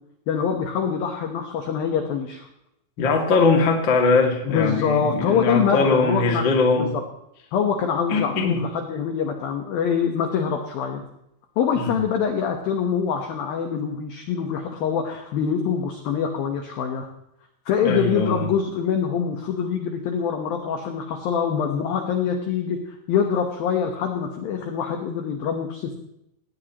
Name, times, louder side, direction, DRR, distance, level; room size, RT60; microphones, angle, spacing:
voice 1, 0.3-2.5 4.5-6.4 6.8-7.0 7.5-11.0 11.6-17.1 17.7-22.8 23.1-25.9, left 7 dB, 70° left, 4 dB, 2.3 m, -24 dB
voice 2, 3.0-6.9 8.1-8.6 11.8-11.9 17.8-18.5, left 3 dB, 40° left, 1 dB, 1.7 m, -21 dB
18.5 x 17.5 x 3.0 m, 0.79 s
omnidirectional pair, 5.8 m